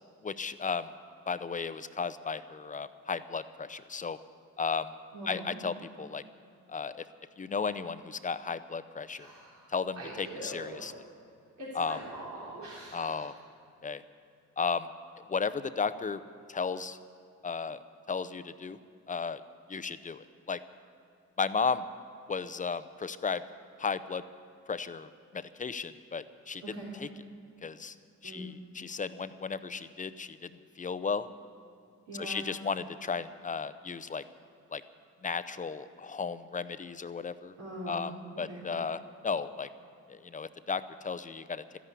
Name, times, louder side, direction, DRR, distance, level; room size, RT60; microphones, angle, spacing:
voice 1, 0.2-0.9 1.3-4.2 4.6-4.9 5.2-6.2 6.7-7.0 7.4-9.3 9.7-10.9 11.7-12.0 12.9-13.3 13.8-14.0 14.6-14.9 15.3-16.2 16.5-17.0 17.4-17.8 18.1-18.8 19.1-19.4 19.7-20.6 21.4-21.8 22.3-23.4 23.8-24.2 24.7-27.1 27.6-27.9 28.2-30.5 30.8-31.3 32.1-34.2 34.7-34.8 35.2-37.5 37.8-39.7 40.1-41.6, left 5 dB, 25° left, 13 dB, 0.6 m, -34 dB
voice 2, 5.1-5.6 9.2-9.6 10.0-10.9 11.6-13.3 26.7-26.9 28.2-28.5 32.1-32.4 37.6-38.1 38.5-38.6, right 1 dB, 65° right, -7 dB, 3.8 m, -42 dB
13.5 x 11.0 x 8.3 m, 2.4 s
cardioid pair, 90°, 30 cm